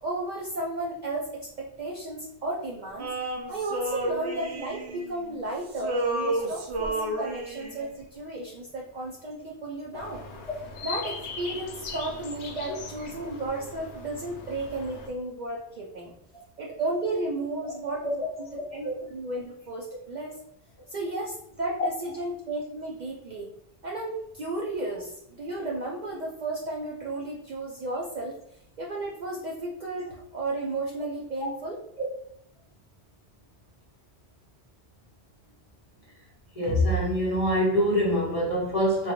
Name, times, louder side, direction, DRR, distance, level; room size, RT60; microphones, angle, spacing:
voice 1, 0.0-3.1 3.5-10.3 10.8-16.1 16.6-18.3 18.7-20.3 20.9-23.5 23.8-28.4 28.8-31.8, right 2 dB, 55° right, -2 dB, 0.5 m, -33 dB
Male singing, 3.0-5.4 5.7-7.9, right 2 dB, 90° right, 0.9 m, -31 dB
sound 1, 9.9-15.1, left 4 dB, 85° left, 0.9 m, -40 dB
voice 2, 36.5-39.1, equal, 35° left, -3 dB, 0.8 m, -24 dB
3.8 x 2.2 x 2.9 m, 0.71 s
omnidirectional pair, 1.1 m